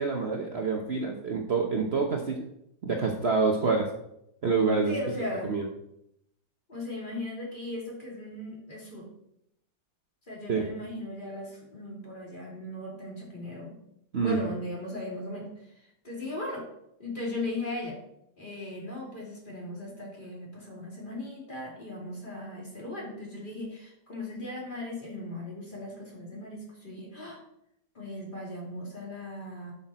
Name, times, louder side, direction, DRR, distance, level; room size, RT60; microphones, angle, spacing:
voice 1, 0.0-2.4 2.8-3.9 4.4-5.0 5.5-5.7 10.5-10.7 14.1-14.4, right 4 dB, 45° right, 1 dB, 1.1 m, -27 dB
voice 2, 4.8-5.5 6.7-9.1 10.3-13.8 14.2-15.7 16.0-16.6 17.0-18.0 18.4-27.4 27.9-29.7, left 1 dB, 30° left, -3 dB, 3.0 m, -37 dB
11.5 x 6.0 x 4.2 m, 0.78 s
omnidirectional pair, 1.8 m